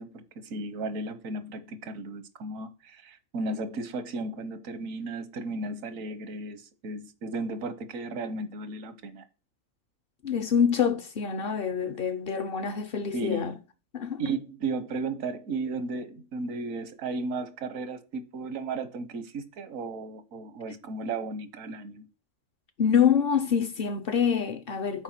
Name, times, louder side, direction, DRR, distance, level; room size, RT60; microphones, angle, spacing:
voice 1, 0.0-9.2 13.1-13.6 14.2-22.1, right 3 dB, 80° right, 1.3 m, -35 dB
voice 2, 10.2-13.5 13.9-14.2 22.8-25.0, left 7 dB, 55° left, 0.8 m, -26 dB
6.8 x 4.6 x 5.7 m
omnidirectional pair, 1.4 m